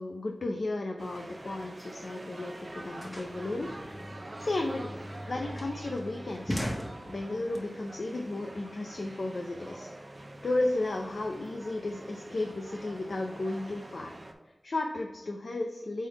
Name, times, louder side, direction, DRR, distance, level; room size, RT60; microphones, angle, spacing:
voice 1, 0.0-3.7 4.4-4.9 5.3-6.6 7.1-9.9 10.2-14.1 14.5-16.1, left 2 dB, 80° left, 2 dB, 0.5 m, -34 dB
sound 1, 1.0-14.3, right 1 dB, 50° right, 0.8 m, -46 dB
sound 2, 2.5-7.6, equal, 20° left, 1.2 m, -39 dB
5.2 x 3.8 x 5.1 m, 1.1 s
wide cardioid pair, 65°, 0 cm